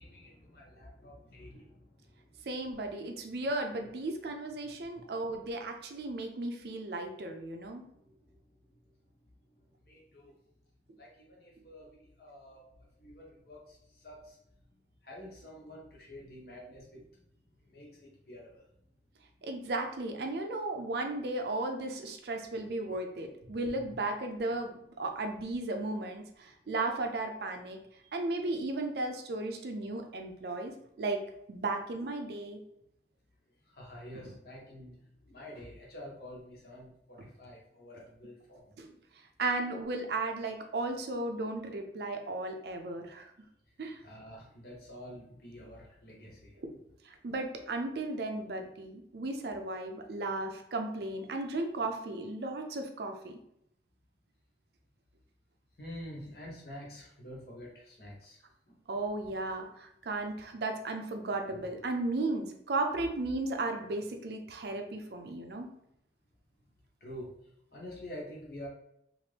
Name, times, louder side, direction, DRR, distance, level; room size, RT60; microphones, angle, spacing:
voice 1, 0.0-2.5 4.9-5.0 7.9-8.4 9.8-10.3 11.0-11.9 12.2-14.4 15.0-17.0 17.6-18.7 22.9-23.0 23.4-23.9 33.7-35.0 35.2-38.8 44.0-46.6 55.8-58.4 58.7-58.8 67.0-67.3 67.7-68.7, left 1 dB, 55° left, -3 dB, 0.9 m, -48 dB
voice 2, 2.5-7.8 19.4-27.8 28.1-31.2 31.5-32.6 37.2-37.3 38.8-38.9 39.4-43.3 43.8-44.0 47.1-53.4 58.9-65.7, right 2 dB, 60° right, 4 dB, 0.4 m, -35 dB
2.8 x 2.5 x 3.3 m, 0.75 s
head